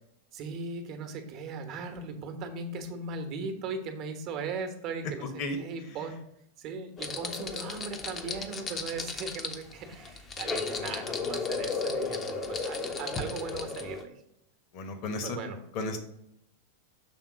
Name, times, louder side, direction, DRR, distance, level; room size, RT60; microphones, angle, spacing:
voice 1, 0.3-6.2 6.6-14.2 15.2-15.6, right 4 dB, 40° right, 6 dB, 1.0 m, -38 dB
sound 1, 7.0-14.0, left 4 dB, 25° left, 0.7 m, -34 dB
voice 2, 14.7-15.4 15.7-16.0, left 2 dB, 45° left, 6 dB, 1.1 m, -33 dB
6.5 x 3.6 x 4.8 m, 0.79 s
figure-of-eight pair, 95°, 0 cm